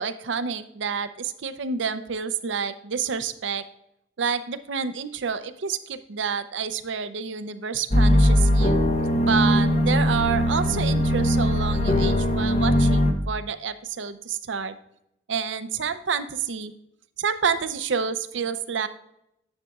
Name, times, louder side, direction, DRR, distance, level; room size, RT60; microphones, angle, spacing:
voice 1, 0.0-3.6 4.2-8.8 9.2-14.7 15.3-16.7 17.2-18.9, right 6 dB, 75° right, 11 dB, 0.6 m, -28 dB
sound 1, 7.9-13.1, equal, 35° left, 0.7 m, -20 dB
10.5 x 6.5 x 2.3 m, 0.80 s
head